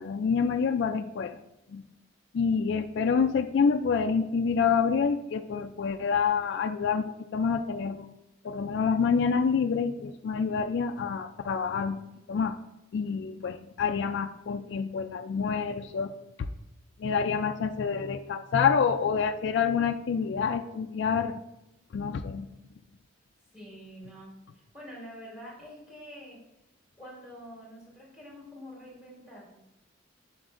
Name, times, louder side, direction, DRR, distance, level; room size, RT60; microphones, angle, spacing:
voice 1, 0.0-1.3 1.7-1.8 2.3-8.1 8.4-12.0 12.3-12.6 12.9-16.1 17.0-21.4 21.9-22.5, left 6 dB, 60° left, 7 dB, 0.3 m, -27 dB
voice 2, 23.5-26.4 27.0-29.6, equal, 5° right, -5 dB, 2.6 m, -46 dB
7.5 x 7.0 x 2.5 m, 0.92 s
head